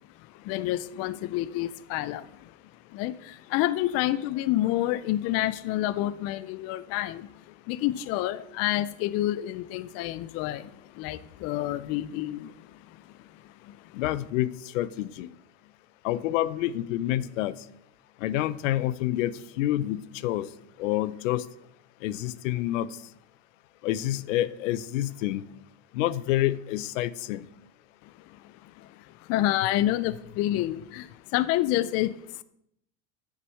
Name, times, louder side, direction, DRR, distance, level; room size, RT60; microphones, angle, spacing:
voice 1, 0.3-2.5 2.9-13.9 28.0-32.4, left 14 dB, 40° left, 15 dB, 0.5 m, -29 dB
voice 2, 13.9-15.3 16.0-17.5 18.2-20.5 20.8-21.4 22.0-22.9 23.8-25.4 25.9-27.5, left 14 dB, 75° left, 17 dB, 0.7 m, -28 dB
7.9 x 6.7 x 7.0 m, 0.75 s
supercardioid pair, 130°, 38 cm